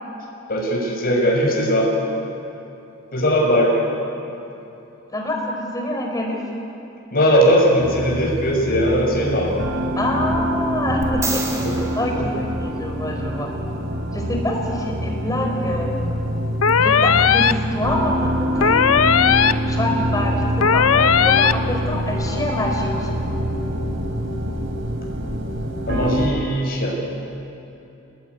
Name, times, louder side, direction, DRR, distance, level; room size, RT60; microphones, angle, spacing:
voice 1, 0.5-1.9 3.1-3.7 7.1-9.5 11.6-11.7 12.2-12.3 25.9-27.0, equal, 45° left, -2 dB, 6.6 m, -19 dB
voice 2, 5.1-6.4 10.0-11.4 11.9-13.5 14.1-16.2 16.8-19.2 19.7-23.1, left 1 dB, 15° left, 1 dB, 5.0 m, -26 dB
sound 1, 7.8-26.3, equal, 65° right, 3.1 m, -25 dB
sound 2, 11.0-13.3 16.7-16.8, right 3 dB, 15° right, 3.6 m, -31 dB
sound 3, 16.6-17.5 18.6-19.5 20.6-21.5, left 7 dB, 90° left, 0.7 m, -16 dB
27.5 x 20.0 x 9.9 m, 2.9 s
head